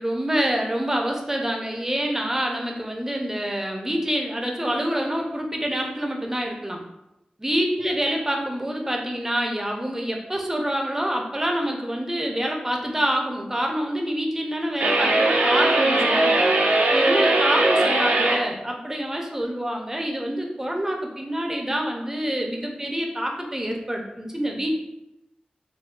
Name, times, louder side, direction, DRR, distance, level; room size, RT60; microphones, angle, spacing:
voice 1, 0.0-6.8 7.4-16.4 16.9-24.7, equal, 15° right, 1 dB, 0.5 m, -26 dB
sound 1, 14.8-18.4, right 2 dB, 80° right, 0.5 m, -20 dB
3.5 x 2.2 x 2.3 m, 0.89 s
wide cardioid pair, 90°, 3 cm